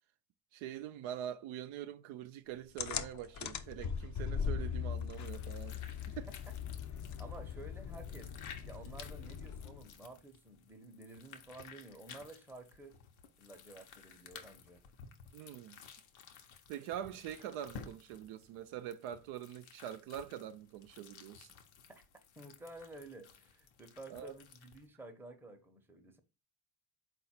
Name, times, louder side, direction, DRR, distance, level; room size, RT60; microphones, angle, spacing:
voice 1, 0.5-6.3 15.3-15.8 16.7-21.5 24.1-24.3, right 10 dB, 75° right, 0.5 m, -44 dB
sound 1, 2.8-9.9, left 7 dB, 40° left, 0.5 m, -40 dB
sound 2, 4.9-24.9, left 6 dB, 70° left, 0.8 m, -55 dB
voice 2, 6.9-8.3 8.6-13.0 13.4-14.8 21.9-22.0 22.4-26.2, right 2 dB, 5° right, 0.7 m, -52 dB
3.9 x 2.4 x 4.2 m
supercardioid pair, 65°, 49 cm